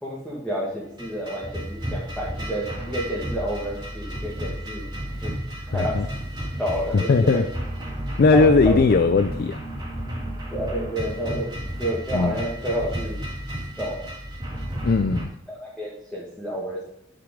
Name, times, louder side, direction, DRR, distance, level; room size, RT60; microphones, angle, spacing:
voice 1, 0.0-4.9 5.2-5.3 5.7-6.0 6.6-7.5 8.3-8.8 10.5-13.2 13.8-14.1 15.5-17.0, right 1 dB, 5° left, -7 dB, 1.9 m, -29 dB
sound 1, 1.0-15.3, right 1 dB, 20° right, 2.7 m, -32 dB
voice 2, 5.7-6.1 6.9-7.4 8.2-9.6 12.1-12.3 14.8-15.3, left 4 dB, 45° left, 10 dB, 0.4 m, -19 dB
9.3 x 6.7 x 3.7 m, 0.77 s
head